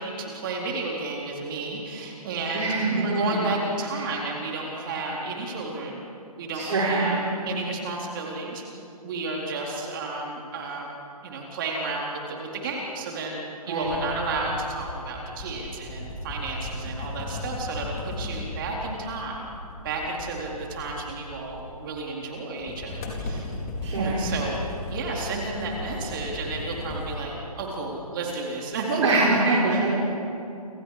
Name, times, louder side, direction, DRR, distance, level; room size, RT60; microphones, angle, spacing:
voice 1, 0.0-6.0 6.4-8.6 9.0-10.9 11.2-13.4 13.7-19.5 19.8-23.5 23.9-29.9, right 3 dB, 35° right, -1 dB, 4.1 m, -31 dB
voice 2, 2.5-3.4 4.0-4.1 6.5-7.1 13.7-13.9 23.8-24.2 29.0-29.9, right 3 dB, 50° right, -4 dB, 4.7 m, -24 dB
sound 1, 13.8-21.9 22.6-27.2, left 1 dB, 25° left, 4.2 m, -36 dB
29.5 x 27.0 x 5.0 m, 2.8 s
figure-of-eight pair, 140°, 20 cm